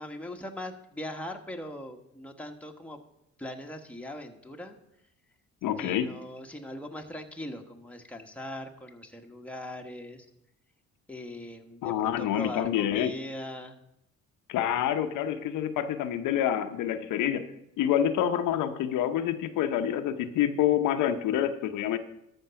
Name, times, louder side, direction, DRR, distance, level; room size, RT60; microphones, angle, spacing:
voice 1, 0.0-3.0 3.4-4.8 5.8-10.3 11.1-13.8, left 1 dB, 5° left, 2 dB, 1.2 m, -40 dB
voice 2, 5.6-6.1 11.8-13.1 14.5-17.5 17.8-22.0, left 10 dB, 90° left, 7 dB, 0.8 m, -27 dB
13.5 x 5.3 x 5.7 m, 0.81 s
cardioid pair, 90°, 30 cm